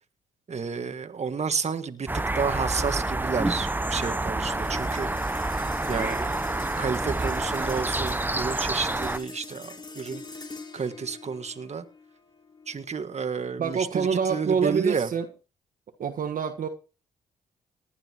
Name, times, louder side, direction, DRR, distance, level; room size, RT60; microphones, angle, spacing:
voice 1, 0.5-2.1 2.4-5.1 5.9-6.5 6.8-10.2 10.7-11.8 12.7-15.1, right 5 dB, 45° right, 1.7 m, -31 dB
sound 1, 2.1-9.2, right 2 dB, 10° right, 0.8 m, -28 dB
sound 2, 4.6-15.2, left 3 dB, 30° left, 2.9 m, -44 dB
voice 2, 13.6-15.3 16.0-16.7, right 6 dB, 60° right, 1.4 m, -26 dB
19.5 x 10.5 x 3.0 m
supercardioid pair, 55°, 16 cm